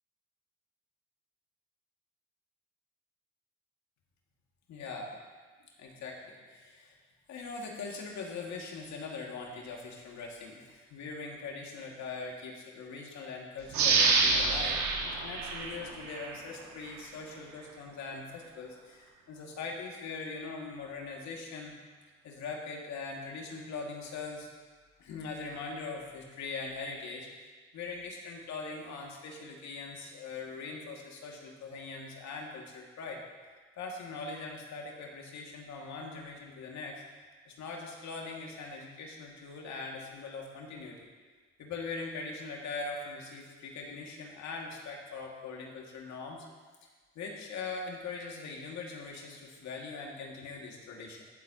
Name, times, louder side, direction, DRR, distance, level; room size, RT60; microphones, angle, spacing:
voice 1, 4.7-5.1 5.8-7.0 7.3-21.7 22.2-24.5 25.0-27.3 27.7-33.2 33.8-37.0 37.5-41.0 41.6-46.4 47.2-51.2, left 4 dB, 70° left, 0 dB, 2.2 m, -41 dB
sound 1, 13.7-16.4 16.9-17.0, right 4 dB, 70° right, 1.5 m, -27 dB
17.0 x 8.0 x 2.9 m, 1.4 s
supercardioid pair, 70°, 30 cm